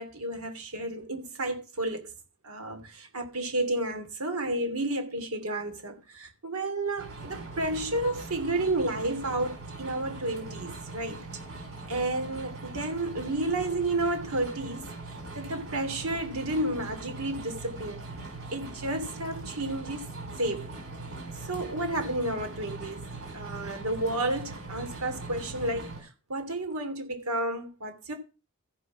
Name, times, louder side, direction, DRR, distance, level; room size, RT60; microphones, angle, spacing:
voice 1, 0.0-2.1 2.4-11.2 11.5-18.0 18.5-20.1 20.4-20.7 21.1-23.0 23.3-28.1, right 2 dB, 75° right, 2.8 m, -31 dB
sound 1, 7.0-26.0, right 2 dB, 60° right, 5.1 m, -41 dB
14.0 x 6.1 x 6.1 m
head